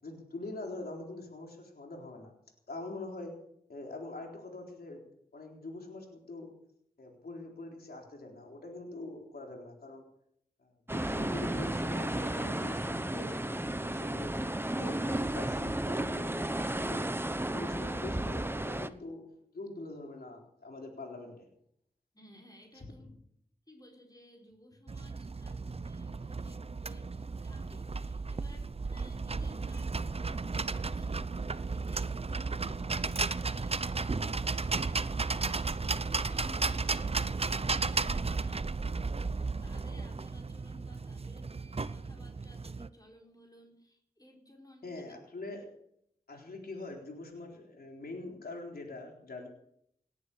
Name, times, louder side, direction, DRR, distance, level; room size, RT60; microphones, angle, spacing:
voice 1, 0.0-2.3 2.7-3.3 3.7-5.1 5.3-6.5 7.0-10.0 10.6-14.3 14.8-17.1 17.5-19.2 19.5-21.5 22.7-22.9 44.8-45.7 46.3-49.5, left 2 dB, 80° left, 1 dB, 3.9 m, -44 dB
sound 1, 10.9-18.9, right 1 dB, 15° right, 1.0 m, -33 dB
voice 2, 22.1-23.1 23.7-45.2, equal, 25° left, 0 dB, 4.7 m, -57 dB
sound 2, 24.9-42.9, right 4 dB, 40° right, 0.7 m, -34 dB
18.5 x 11.0 x 6.7 m, 0.72 s
cardioid pair, 45°, 16 cm